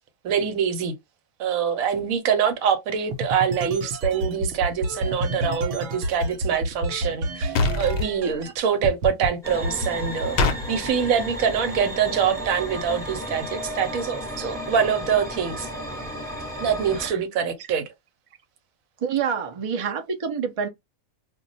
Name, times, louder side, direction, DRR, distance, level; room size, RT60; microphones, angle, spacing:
voice 1, 0.2-0.9 1.4-15.7 16.6-17.9, right 7 dB, 85° right, 1.1 m, -25 dB
sound 1, 3.1-8.5 8.8-9.3 9.6-11.1, right 1 dB, 70° right, 0.9 m, -29 dB
sound 2, 7.6-8.1 10.4-10.6, left 3 dB, 55° left, 0.7 m, -22 dB
sound 3, 9.4-17.1, equal, 5° left, 0.7 m, -33 dB
voice 2, 19.0-20.7, right 7 dB, 50° right, 0.4 m, -27 dB
2.3 x 2.2 x 3.9 m
omnidirectional pair, 1.4 m